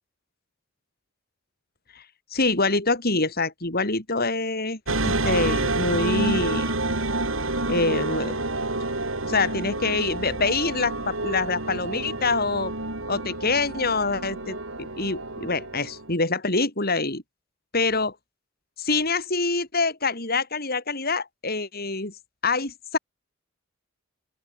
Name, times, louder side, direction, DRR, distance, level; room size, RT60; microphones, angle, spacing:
voice 1, 2.3-6.7 7.7-8.4 9.2-12.7 13.1-17.2 17.7-18.1 18.8-22.1 22.4-23.0, left 3 dB, 50° left, 6.4 m, -25 dB
sound 1, 4.9-16.1, right 2 dB, 75° right, 5.5 m, -28 dB
open air
head